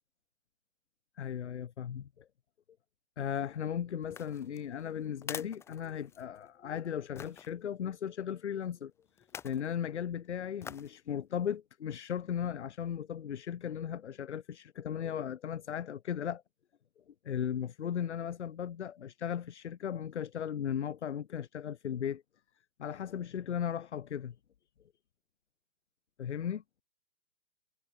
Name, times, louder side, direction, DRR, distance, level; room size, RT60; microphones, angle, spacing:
voice 1, 1.2-2.3 3.2-8.9 9.2-16.4 17.2-22.2 22.8-24.4 26.2-26.6, left 9 dB, 50° left, 2.4 m, -36 dB
sound 1, 4.0-6.5 7.2-7.5 9.2-9.7 10.6-11.0 11.4-11.5, left 7 dB, 5° left, 0.9 m, -46 dB
figure-of-eight pair, 130°, 44 cm